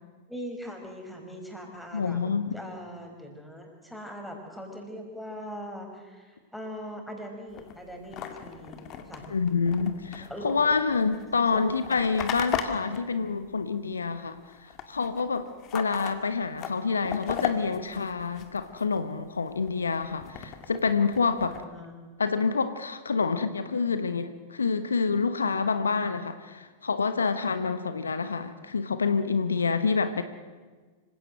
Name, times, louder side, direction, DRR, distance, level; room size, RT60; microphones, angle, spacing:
voice 1, 0.3-2.2 2.5-9.2 10.2-10.6 11.5-11.7 21.6-21.9, equal, ahead, 2 dB, 5.1 m, -41 dB
voice 2, 1.9-2.5 9.3-15.5 15.7-21.6 22.2-30.2, left 5 dB, 80° left, 11 dB, 1.1 m, -27 dB
sound 1, 7.5-14.1 14.4-19.0 19.4-21.6, left 9 dB, 40° left, 2.1 m, -38 dB
25.5 x 17.0 x 7.8 m, 1.4 s
figure-of-eight pair, 95°, 0 cm